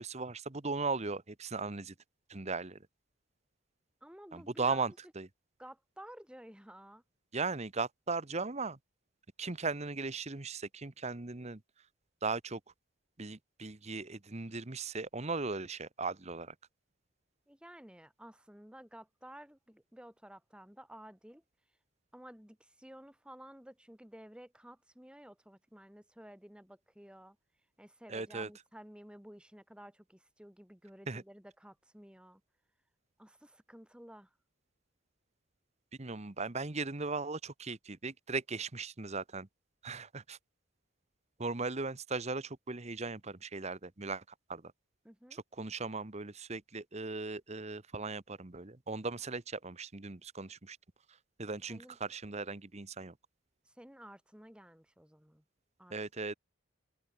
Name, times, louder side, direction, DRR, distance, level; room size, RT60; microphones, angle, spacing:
voice 1, 0.0-1.9 2.3-2.8 4.3-5.3 7.3-8.8 9.4-11.6 12.2-12.6 13.2-16.5 28.1-28.5 31.1-31.2 36.0-39.5 39.8-40.4 41.4-44.2 44.5-44.7 45.3-50.8 51.4-53.1 55.9-56.3, right 3 dB, 30° right, 1.0 m, -38 dB
voice 2, 4.0-5.0 5.6-7.0 17.5-21.4 22.1-27.4 27.8-32.4 33.2-34.3 45.0-45.4 51.7-52.0 53.6-55.4 55.8-55.9, equal, 5° right, 1.5 m, -53 dB
open air
head